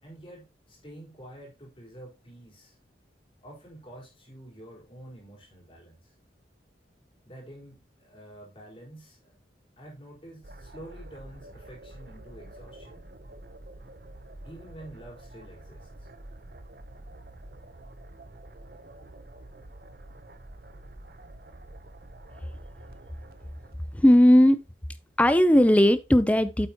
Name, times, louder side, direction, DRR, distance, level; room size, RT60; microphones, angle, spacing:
voice 1, 0.0-2.8 3.4-6.1 7.3-9.3 9.8-13.0 14.4-16.1, right 1 dB, 30° left, 4.3 m, -48 dB
sound 1, 10.4-24.7, right 1 dB, 55° right, 0.8 m, -47 dB
voice 2, 23.9-24.6 25.2-26.7, equal, 10° left, 0.5 m, -18 dB
9.0 x 8.1 x 2.9 m
head